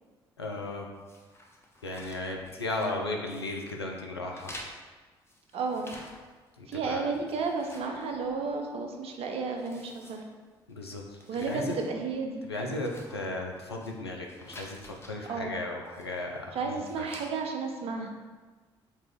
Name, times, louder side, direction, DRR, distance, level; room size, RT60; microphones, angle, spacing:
voice 1, 0.4-0.9 1.8-4.5 6.6-7.1 10.7-11.0 11.5-11.7 12.5-17.1, left 2 dB, 85° left, 1 dB, 0.4 m, -35 dB
sound 1, 1.0-3.0 3.3-3.8 4.3-6.5 6.8-8.7 9.1-9.2 9.6-10.7 11.1-11.9 12.2-12.3 12.7-13.9 14.3-15.1 15.8-16.3 16.7-17.3, left 1 dB, 20° left, 0.8 m, -50 dB
voice 2, 5.5-6.0 6.7-10.2 11.3-12.5 15.3-15.6 16.5-18.1, right 4 dB, 50° right, 2 dB, 0.6 m, -32 dB
4.3 x 2.9 x 3.5 m, 1.4 s
figure-of-eight pair, 45°, 13 cm